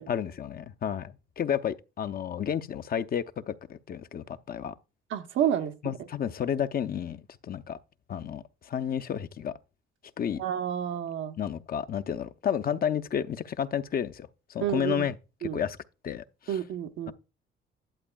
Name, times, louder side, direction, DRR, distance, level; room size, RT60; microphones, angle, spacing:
voice 1, 0.0-4.7 5.8-7.2 7.4-7.8 8.1-9.5 10.2-10.4 11.4-15.2 15.4-15.8 16.0-16.6 17.1-17.2, left 8 dB, 50° left, 0.6 m, -31 dB
voice 2, 5.1-5.7 10.4-11.4 14.6-15.0 15.4-15.6 16.5-17.1, right 9 dB, 80° right, 1.0 m, -29 dB
11.5 x 8.0 x 2.3 m
cardioid pair, 90°, 20 cm